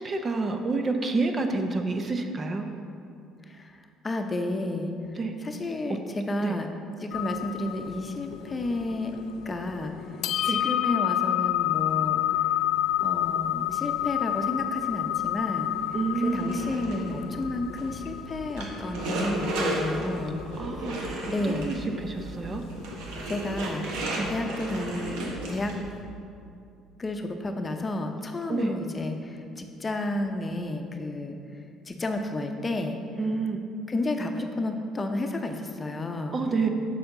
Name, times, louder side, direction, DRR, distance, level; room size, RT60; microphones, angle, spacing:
voice 1, 0.0-2.6 5.2-5.3 6.4-6.6 10.5-10.6 15.9-16.6 20.6-21.1 21.4-22.6 24.2-24.3 28.5-28.7 33.2-33.6 36.3-36.7, right 3 dB, 35° right, 5 dB, 0.7 m, -28 dB
voice 2, 3.5-4.9 5.4-6.7 7.0-9.2 9.5-9.9 10.4-12.2 13.0-15.7 16.1-20.4 21.3-21.7 23.3-23.9 24.3-25.7 27.0-31.4 31.9-33.0 33.9-36.4, left 2 dB, 30° left, 5 dB, 0.7 m, -31 dB
sound 1, 7.1-23.5, left 12 dB, 70° left, 0.3 m, -30 dB
sound 2, 16.3-26.0, right 1 dB, 75° right, 1.2 m, -34 dB
6.9 x 6.5 x 3.8 m, 2.5 s
hypercardioid pair, 65°, 0 cm